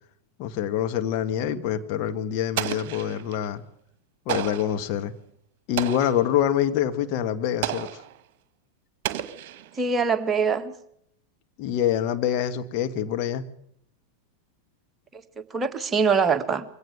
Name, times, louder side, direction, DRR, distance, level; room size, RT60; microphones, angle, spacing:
voice 1, 0.4-3.6 4.3-5.1 5.7-8.0 11.6-13.4, left 10 dB, 40° left, 1.7 m, -26 dB
Explosion, 2.6-3.5 4.3-4.8 5.8-6.3 7.6-8.2 9.0-9.9, right 12 dB, 45° right, 1.6 m, -32 dB
voice 2, 9.8-10.7 15.1-16.7, right 5 dB, 20° right, 1.7 m, -24 dB
23.0 x 17.5 x 6.6 m
figure-of-eight pair, 90°, 0 cm